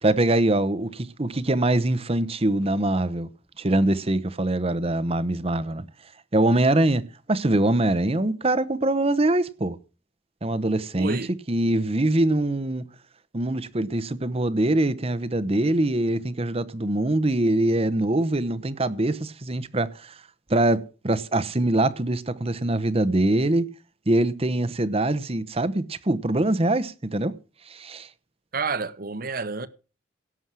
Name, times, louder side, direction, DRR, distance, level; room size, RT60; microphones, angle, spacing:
voice 1, 0.0-3.3 3.6-5.8 6.3-9.8 10.4-11.2 11.5-12.8 13.3-20.1 20.5-23.7 24.1-27.3 27.7-28.1, right 1 dB, 30° right, 0.9 m, -23 dB
voice 2, 11.0-11.3 28.5-29.7, right 4 dB, 45° right, 1.1 m, -29 dB
17.0 x 7.2 x 6.2 m
head